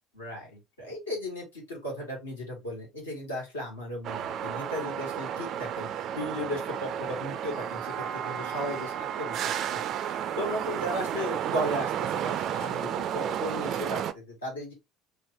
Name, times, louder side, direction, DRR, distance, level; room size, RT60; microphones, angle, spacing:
voice 1, 0.1-9.8 10.4-14.7, equal, 75° left, 1.4 m, -36 dB
sound 1, 4.0-14.1, right 9 dB, 45° right, 0.3 m, -32 dB
3.2 x 2.4 x 3.1 m
figure-of-eight pair, 60°, 0 cm